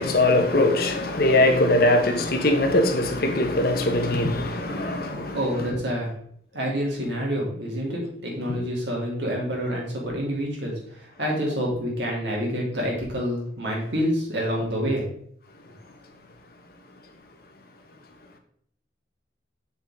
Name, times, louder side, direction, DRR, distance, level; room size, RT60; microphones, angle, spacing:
voice 1, 0.0-5.4 8.5-8.6, left 1 dB, 55° left, 1.3 m, -21 dB
voice 2, 5.0-6.1 6.5-15.1, equal, 70° right, 3.1 m, -28 dB
7.2 x 6.9 x 3.7 m
head